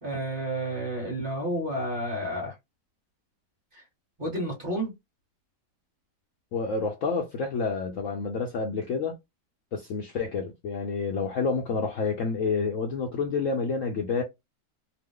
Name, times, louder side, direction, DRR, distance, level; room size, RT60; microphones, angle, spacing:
voice 1, 0.0-2.5 3.7-3.8 4.2-4.9, right 1 dB, 35° right, 1.3 m, -30 dB
voice 2, 6.5-9.2 9.7-14.2, left 4 dB, 65° left, 0.8 m, -29 dB
2.9 x 2.0 x 3.6 m
omnidirectional pair, 1.8 m